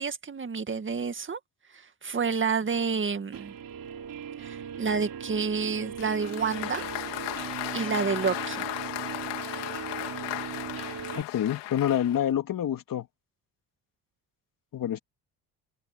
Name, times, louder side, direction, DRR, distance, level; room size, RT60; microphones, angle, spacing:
voice 1, 0.0-1.4 1.7-3.5 4.4-6.8 7.7-8.6, right 5 dB, 30° right, 2.1 m, -29 dB
Guitar, 3.3-11.2, right 9 dB, 55° right, 2.9 m, -39 dB
Applause, 6.0-12.3, left 17 dB, 85° left, 2.7 m, -36 dB
voice 2, 11.2-13.1 14.7-15.0, left 10 dB, 55° left, 2.5 m, -27 dB
open air
cardioid pair, 90°, 41 cm